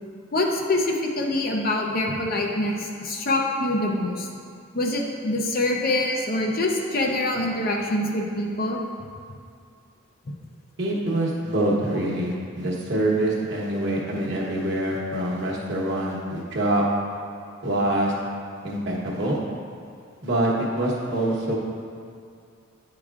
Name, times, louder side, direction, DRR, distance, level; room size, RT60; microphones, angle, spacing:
voice 1, 0.3-4.3 4.7-8.8, left 1 dB, 40° left, 0 dB, 0.5 m, -25 dB
voice 2, 10.8-16.8 17.6-18.1 18.6-19.4 20.2-21.6, right 1 dB, 55° right, -3 dB, 1.0 m, -25 dB
9.5 x 4.8 x 2.4 m, 2.4 s
head